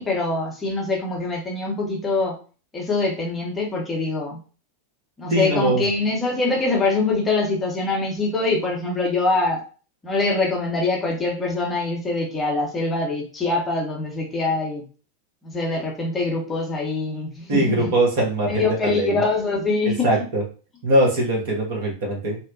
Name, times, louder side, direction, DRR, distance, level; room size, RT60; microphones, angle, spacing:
voice 1, 0.0-2.3 2.7-4.4 5.2-9.6 10.0-14.8 15.5-17.9 18.5-20.1, left 3 dB, 15° left, -1 dB, 0.7 m, -24 dB
voice 2, 5.3-5.8 17.5-19.2 19.8-20.4 20.8-22.4, right 1 dB, 55° right, -2 dB, 1.0 m, -21 dB
2.7 x 2.1 x 2.6 m, 0.37 s
figure-of-eight pair, 90°, 0 cm